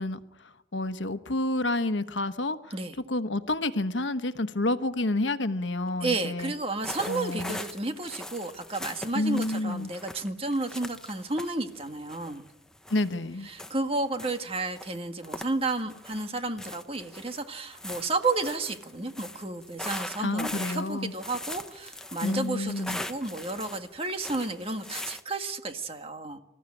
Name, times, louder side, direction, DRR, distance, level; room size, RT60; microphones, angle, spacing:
voice 1, 0.0-2.7 3.1-6.5 7.1-7.6 9.1-9.9 12.9-13.5 20.2-21.1 22.2-23.0, left 2 dB, 80° left, 10 dB, 1.2 m, -29 dB
voice 2, 6.0-12.4 13.4-26.4, right 2 dB, 30° right, 7 dB, 1.7 m, -32 dB
sound 1, 6.4-6.6 6.8-13.1 13.5-14.4 14.7-16.3 16.6-25.2, left 1 dB, 5° left, 1.0 m, -41 dB
26.0 x 14.5 x 9.9 m, 0.92 s
head